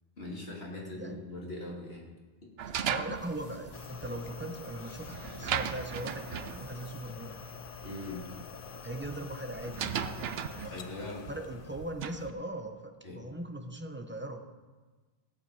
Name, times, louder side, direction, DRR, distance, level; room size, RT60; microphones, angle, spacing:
voice 1, 0.2-2.0 7.8-8.2 10.7-11.2 13.0-13.2, left 2 dB, 80° left, -3 dB, 3.0 m, -41 dB
voice 2, 0.8-1.2 2.9-7.5 8.8-10.2 10.5-10.8 11.3-14.4, right 1 dB, 10° right, 5 dB, 0.9 m, -40 dB
sound 1, 2.6-12.3, right 8 dB, 80° right, 0.9 m, -38 dB
sound 2, 3.1-9.3, equal, 30° right, 3.4 m, -55 dB
sound 3, 3.7-11.9, left 8 dB, 65° left, 0.8 m, -47 dB
16.5 x 8.4 x 4.8 m, 1.3 s
omnidirectional pair, 1.0 m